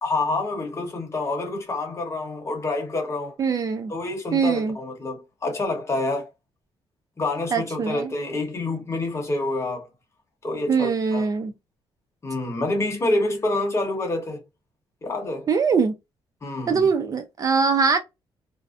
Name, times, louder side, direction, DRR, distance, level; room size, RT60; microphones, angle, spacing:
voice 1, 0.0-3.3 3.9-6.3 7.2-9.9 10.4-11.3 12.2-14.4 15.0-15.5 16.4-16.9, left 2 dB, 30° left, 1.0 m, -27 dB
voice 2, 3.4-3.9 4.3-4.8 7.5-8.1 10.7-11.5 15.5-15.9 16.7-18.0, right 5 dB, 35° right, 0.4 m, -22 dB
2.5 x 2.1 x 2.4 m
cardioid pair, 130°, 10 cm